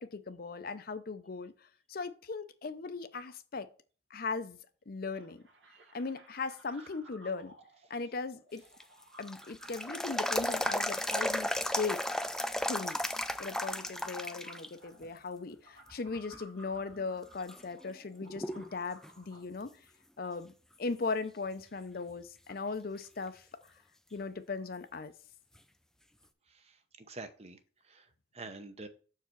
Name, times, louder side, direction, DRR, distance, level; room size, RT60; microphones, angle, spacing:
voice 1, 0.0-1.5 1.9-3.7 4.1-4.6 4.9-5.4 5.9-7.5 7.9-8.6 9.2-11.5 11.8-12.0 12.6-13.0 13.4-19.7 20.2-20.5 20.8-23.4 24.1-25.1, left 4 dB, 50° left, 0.6 m, -38 dB
sound 1, 5.1-19.4, right 1 dB, 75° right, 1.6 m, -58 dB
sound 2, 8.6-14.7 15.0-15.1 15.9-16.4 16.9-17.0 17.5-18.7 19.0-19.1 22.5-22.6 25.5-25.6, left 1 dB, 5° left, 0.3 m, -34 dB
voice 2, 26.5-28.9, right 3 dB, 35° right, 0.8 m, -48 dB
6.8 x 4.7 x 4.5 m
head